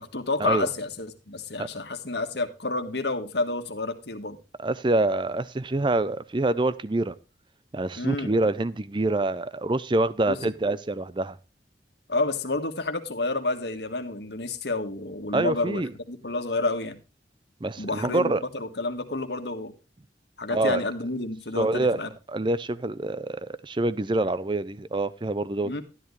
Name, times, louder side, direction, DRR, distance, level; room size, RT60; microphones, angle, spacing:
voice 1, 0.0-4.4 8.0-8.3 10.3-10.4 12.1-15.8 16.1-17.0 17.8-19.7 20.4-22.1 25.6-25.8, left 2 dB, 65° left, 1.6 m, -30 dB
voice 2, 4.6-7.2 7.7-11.4 15.3-15.9 17.6-18.4 20.5-20.8 21.5-22.0 22.3-25.8, right 2 dB, 25° right, 0.5 m, -26 dB
12.5 x 10.5 x 3.2 m
head